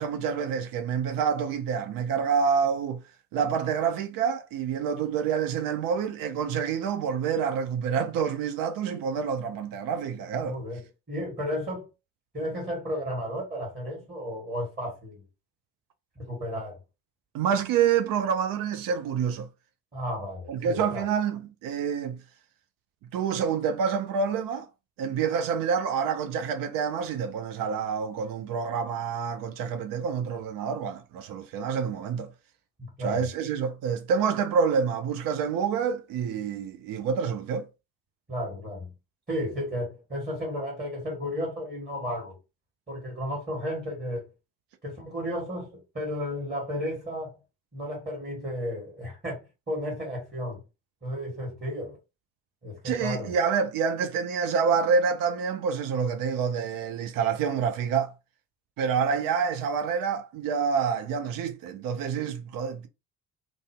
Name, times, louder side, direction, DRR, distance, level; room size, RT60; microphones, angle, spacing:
voice 1, 0.0-3.0 3.3-10.6 17.3-19.5 20.5-22.2 23.1-24.7 25.0-32.3 33.0-37.7 52.8-58.1 58.8-62.9, right 6 dB, 50° right, 0.6 m, -27 dB
voice 2, 10.4-11.9 12.3-15.2 16.2-16.8 19.9-21.1 32.8-33.3 38.3-38.9 39.3-42.4 42.9-44.2 44.8-47.4 47.7-50.6 51.0-52.0 52.6-53.3, equal, 20° right, 1.5 m, -33 dB
2.6 x 2.0 x 3.3 m
figure-of-eight pair, 45°, 45 cm